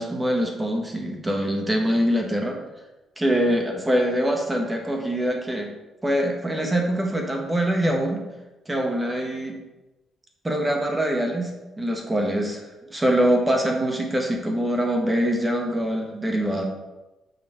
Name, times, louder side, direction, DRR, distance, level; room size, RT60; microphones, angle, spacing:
voice 1, 0.0-2.6 3.2-5.7 6.0-8.2 8.6-9.6 10.4-16.6, equal, 15° right, 2 dB, 1.5 m, -24 dB
6.8 x 5.4 x 4.4 m, 1.0 s
cardioid pair, 90°, 0 cm